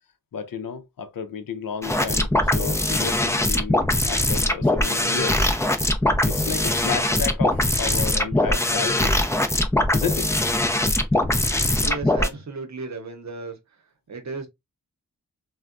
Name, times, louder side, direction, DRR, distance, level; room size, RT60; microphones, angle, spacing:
voice 1, 0.3-5.5 6.3-9.2 9.9-10.4, left 6 dB, 75° left, 0.6 m, -32 dB
sound 1, 1.8-12.3, left 1 dB, 10° left, 0.4 m, -22 dB
voice 2, 11.7-13.5 14.1-14.5, right 4 dB, 55° right, 0.8 m, -34 dB
3.4 x 2.2 x 2.4 m
wide cardioid pair, 95°, 34 cm